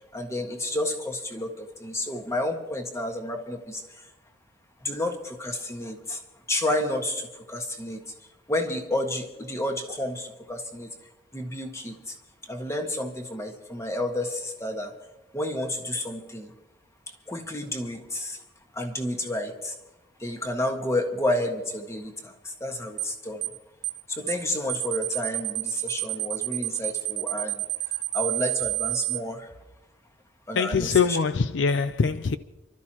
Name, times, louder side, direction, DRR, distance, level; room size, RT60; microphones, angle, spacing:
voice 1, 0.1-3.8 4.8-6.2 6.5-8.0 8.5-10.9 11.3-12.1 12.5-14.9 15.3-16.5 17.3-18.4 18.7-19.7 20.2-23.5 24.1-27.6 28.1-29.5 30.5-31.2, left 1 dB, 15° left, 1.6 m, -30 dB
sound 1, 23.0-23.1 23.4-23.6 23.8-24.0 24.3-24.4 24.7-29.2, right 17 dB, 55° right, 0.6 m, -29 dB
voice 2, 30.6-32.4, left 5 dB, 70° left, 0.5 m, -23 dB
29.5 x 13.0 x 3.0 m
head